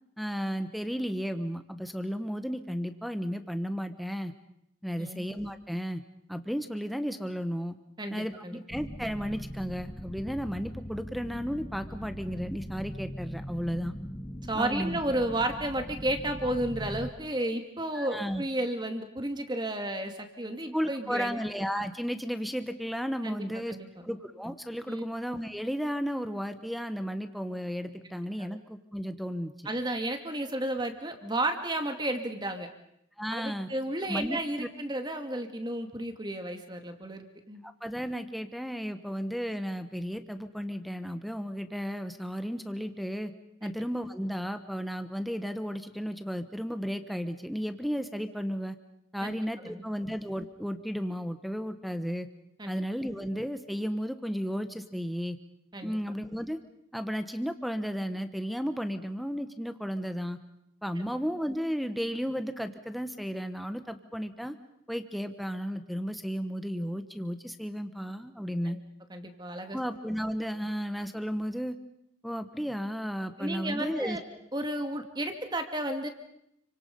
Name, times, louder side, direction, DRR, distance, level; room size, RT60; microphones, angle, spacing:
voice 1, 0.2-4.3 4.8-6.0 6.3-7.8 8.1-13.9 14.5-15.0 17.9-18.4 20.7-23.8 24.0-29.7 33.2-33.7 34.0-34.7 37.6-43.3 43.6-48.7 49.1-52.3 52.7-55.4 55.8-56.6 56.9-60.4 60.8-64.5 64.9-68.8 69.7-71.8 72.2-74.2, equal, ahead, 9 dB, 1.3 m, -34 dB
voice 2, 8.0-8.6 14.5-21.3 23.2-23.9 24.9-25.0 28.5-28.6 29.6-32.7 33.3-37.6 43.6-43.7 49.2-49.8 52.6-52.8 55.7-56.0 61.0-61.1 68.6-68.8 69.1-69.8 73.4-74.2 74.5-76.1, right 1 dB, 20° right, 6 dB, 2.3 m, -33 dB
sound 1, 8.7-17.1, equal, 20° left, 1.2 m, -40 dB
30.0 x 24.5 x 5.5 m, 0.77 s
head